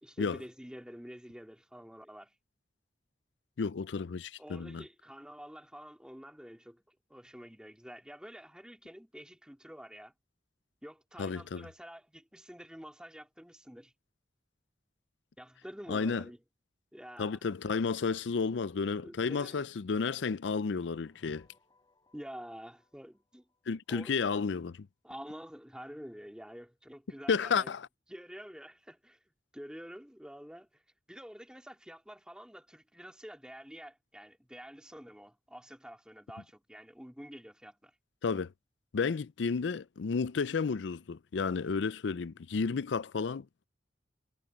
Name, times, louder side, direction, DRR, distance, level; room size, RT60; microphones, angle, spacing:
voice 1, 0.0-2.3 4.4-10.1 10.8-13.9 15.4-16.4 16.9-17.4 19.0-19.7 22.1-23.5 23.9-24.2 25.0-27.7 28.1-29.2 29.5-30.8 31.1-37.9, equal, 5° right, 2.9 m, -48 dB
voice 2, 3.6-4.8 11.2-11.7 15.9-16.2 17.2-21.5 23.7-24.9 27.3-27.9 38.2-38.5 38.9-43.7, left 5 dB, 85° left, 0.5 m, -32 dB
sound 1, 20.3-24.4, left 2 dB, 25° left, 3.4 m, -72 dB
head